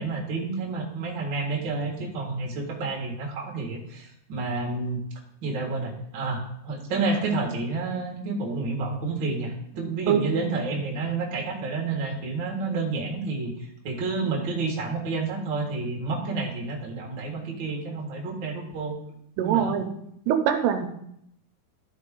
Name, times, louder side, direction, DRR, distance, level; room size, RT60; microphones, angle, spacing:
voice 1, 0.0-5.0 5.4-13.5 13.8-19.0 19.4-19.8, right 3 dB, 50° right, -2 dB, 1.4 m, -29 dB
voice 2, 19.4-19.9 20.3-20.9, right 9 dB, 80° right, 6 dB, 2.8 m, -23 dB
13.5 x 4.6 x 3.7 m, 0.73 s
omnidirectional pair, 4.8 m